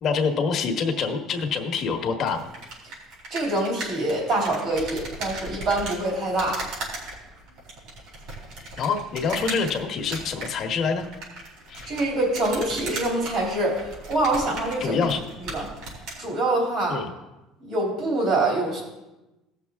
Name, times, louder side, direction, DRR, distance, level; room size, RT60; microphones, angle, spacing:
voice 1, 0.0-2.5 8.8-11.1 11.7-11.9 14.8-15.2 16.9-17.1, left 5 dB, 40° left, 4 dB, 1.3 m, -26 dB
sound 1, 2.2-16.2, right 2 dB, 65° right, 4.2 m, -38 dB
voice 2, 3.3-6.7 11.9-15.0 15.5-15.6 16.2-17.0 17.6-18.8, right 2 dB, 45° right, -2 dB, 3.3 m, -25 dB
17.0 x 6.7 x 3.5 m, 1.0 s
cardioid pair, 150°, 0 cm